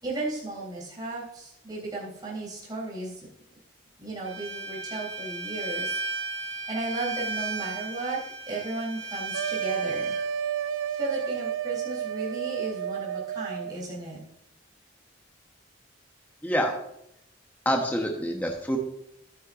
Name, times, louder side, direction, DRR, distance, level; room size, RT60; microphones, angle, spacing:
voice 1, 0.0-3.3 4.0-6.0 6.4-8.2 8.5-10.1 11.0-14.2, right 2 dB, 20° right, -6 dB, 3.5 m, -34 dB
Bowed string instrument, 4.2-10.2, right 2 dB, 55° right, 1.5 m, -35 dB
sound 1, 9.3-13.7, right 8 dB, 85° right, 0.5 m, -31 dB
voice 2, 16.4-16.8 17.6-18.8, equal, 10° left, 1 dB, 1.0 m, -26 dB
11.5 x 9.5 x 2.5 m, 0.78 s
head